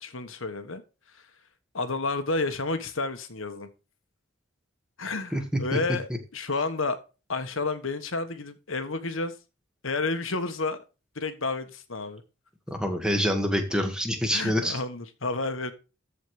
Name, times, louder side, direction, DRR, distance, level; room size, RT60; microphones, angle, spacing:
voice 1, 0.0-0.8 1.1-1.2 1.7-3.7 5.0-7.0 7.3-9.3 9.8-10.8 11.1-12.2 14.3-15.7, left 3 dB, 75° left, 1.4 m, -30 dB
voice 2, 12.7-14.8, equal, 5° right, 1.8 m, -26 dB
14.0 x 5.1 x 4.9 m
head